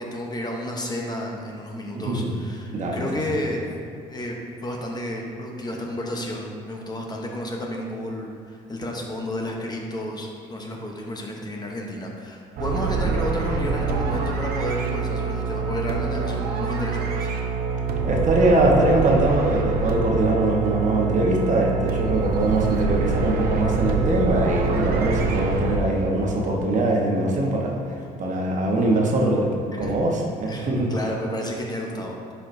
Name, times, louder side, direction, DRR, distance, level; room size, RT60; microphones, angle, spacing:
voice 1, 0.0-3.7 4.1-17.3 29.7-29.9 30.5-32.2, left 1 dB, 25° left, 0 dB, 0.9 m, -31 dB
voice 2, 1.9-2.3 2.7-3.1 18.0-30.9, right 2 dB, 45° right, -1 dB, 1.1 m, -22 dB
sound 1, 12.6-25.8, right 4 dB, 65° right, 0.8 m, -25 dB
9.7 x 4.8 x 2.6 m, 2.3 s
cardioid pair, 110°, 17 cm